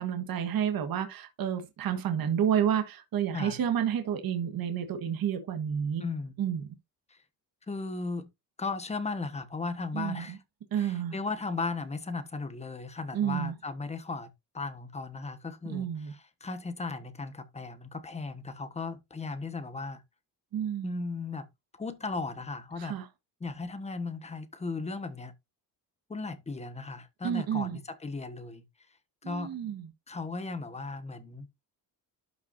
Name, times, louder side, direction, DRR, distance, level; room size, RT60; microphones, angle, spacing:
voice 1, 0.0-6.0 6.4-6.6 9.9-10.4 10.7-11.1 13.1-13.5 15.6-16.1 20.5-21.0 22.8-23.1 27.2-27.8 29.2-29.9, right 9 dB, 55° right, 1.6 m, -30 dB
voice 2, 6.0-6.3 7.1-7.2 7.7-8.3 8.6-10.4 10.7-14.3 14.5-20.0 20.8-21.5 21.8-23.0 23.4-25.3 26.1-28.6 29.2-29.6 30.1-31.5, left 3 dB, 15° left, 1.3 m, -36 dB
12.0 x 5.9 x 2.6 m
cardioid pair, 150°, 42 cm